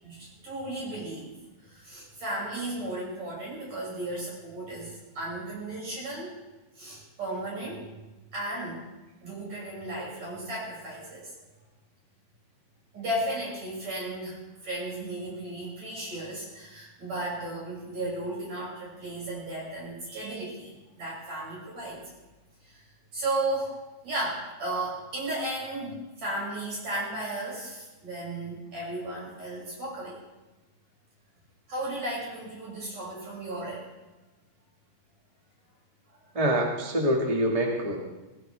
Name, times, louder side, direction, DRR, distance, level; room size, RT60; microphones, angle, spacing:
voice 1, 0.0-1.3 1.6-6.3 6.8-7.9 8.3-8.8 9.2-11.3 12.9-22.0 22.6-22.8 23.1-23.7 24.0-30.2 31.7-33.9 36.1-36.2, right 1 dB, 50° right, -5 dB, 7.7 m, -35 dB
voice 2, 36.3-38.0, equal, 20° right, -1 dB, 0.9 m, -25 dB
19.0 x 16.5 x 3.4 m, 1.1 s
omnidirectional pair, 4.2 m